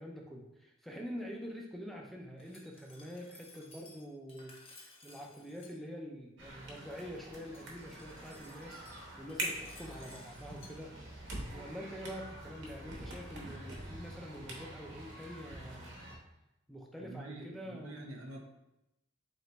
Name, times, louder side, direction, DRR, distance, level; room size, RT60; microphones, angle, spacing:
voice 1, 0.0-10.9 11.5-15.9 16.7-18.0, equal, ahead, 0 dB, 0.4 m, -46 dB
Glass, 2.4-5.7 7.4-10.7, left 2 dB, 30° left, 0.7 m, -58 dB
sound 1, 6.4-16.2, right 1 dB, 60° right, 0.8 m, -45 dB
voice 2, 17.0-18.4, right 2 dB, 85° right, 2 dB, 0.7 m, -46 dB
3.2 x 2.9 x 4.0 m, 0.90 s
head